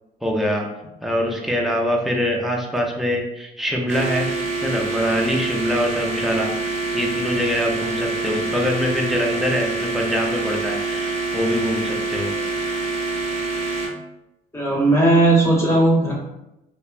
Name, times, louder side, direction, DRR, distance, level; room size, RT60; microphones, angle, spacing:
voice 1, 0.2-0.7 1.0-4.3 4.6-12.4, equal, ahead, -1 dB, 0.5 m, -24 dB
sound 1, 3.9-13.9, right 3 dB, 40° right, 0.6 m, -26 dB
voice 2, 14.5-16.1, right 2 dB, 15° left, -5 dB, 1.0 m, -16 dB
3.0 x 2.0 x 2.3 m, 0.90 s
cardioid pair, 110°, 17 cm